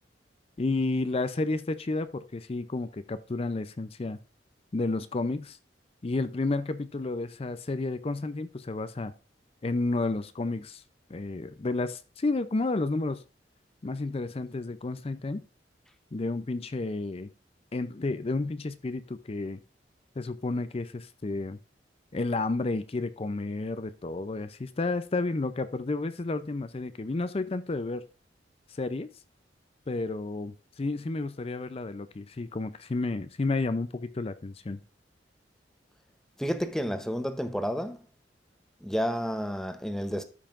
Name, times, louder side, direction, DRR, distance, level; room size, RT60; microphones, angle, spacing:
voice 1, 0.6-4.2 4.7-5.6 6.0-9.1 9.6-10.8 11.1-13.2 13.8-15.4 16.1-17.3 17.7-19.6 20.2-21.6 22.1-28.0 28.7-29.1 29.9-34.8, left 3 dB, 35° left, 0.5 m, -31 dB
voice 2, 36.4-38.0 38.8-40.2, equal, 5° left, 0.8 m, -30 dB
13.0 x 5.6 x 2.5 m
head